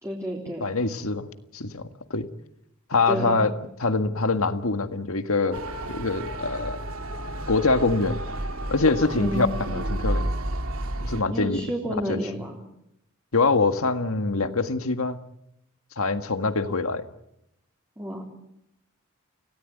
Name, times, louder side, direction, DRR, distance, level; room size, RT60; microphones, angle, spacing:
voice 1, 0.0-0.7 3.1-3.5 9.1-9.4 11.3-12.6 18.0-18.2, equal, 15° right, -1 dB, 3.6 m, -30 dB
voice 2, 0.6-1.3 1.5-1.8 2.1-2.3 2.9-3.5 3.8-5.6 5.9-6.8 7.5-8.2 8.7-10.3 11.0-11.6 12.1-12.2 13.3-15.2 16.0-17.0, left 3 dB, 80° left, 9 dB, 1.8 m, -24 dB
Motor vehicle (road) / Siren, 5.5-11.2, right 1 dB, 80° right, 2.3 m, -31 dB
29.0 x 17.5 x 9.3 m, 0.82 s
head